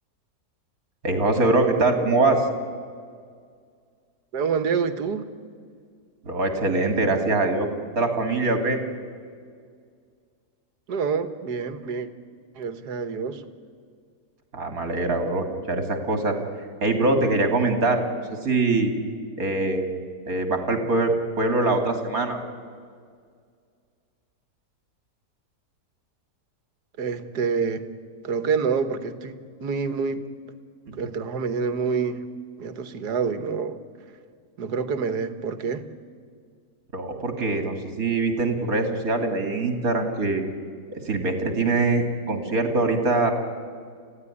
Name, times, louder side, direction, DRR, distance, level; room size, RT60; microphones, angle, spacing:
voice 1, 1.0-2.4 6.2-7.7 8.0-8.8 14.5-16.4 16.8-18.0 18.3-18.9 19.4-19.9 20.3-21.1 21.4-22.4 30.9-31.0 36.9-40.4 40.9-43.3, right 2 dB, 60° right, 5 dB, 3.0 m, -23 dB
voice 2, 4.3-5.3 10.9-12.1 12.6-13.4 27.0-27.8 28.2-30.2 30.9-32.2 32.6-33.8 34.6-35.9, right 5 dB, 85° right, 10 dB, 1.8 m, -27 dB
29.5 x 15.5 x 9.9 m, 2.1 s
omnidirectional pair, 1.7 m